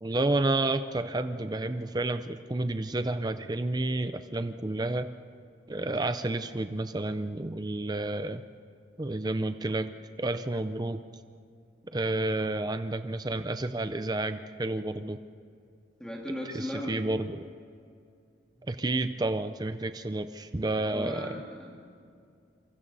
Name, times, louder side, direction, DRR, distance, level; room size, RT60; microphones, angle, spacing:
voice 1, 0.0-5.1 5.7-8.4 9.0-9.9 10.2-11.0 11.9-15.2 16.5-17.5 18.7-21.4, right 2 dB, 20° right, 10 dB, 0.5 m, -30 dB
voice 2, 16.0-17.1 20.8-22.0, left 1 dB, 5° left, -2 dB, 2.1 m, -38 dB
27.5 x 24.0 x 4.1 m, 2.3 s
head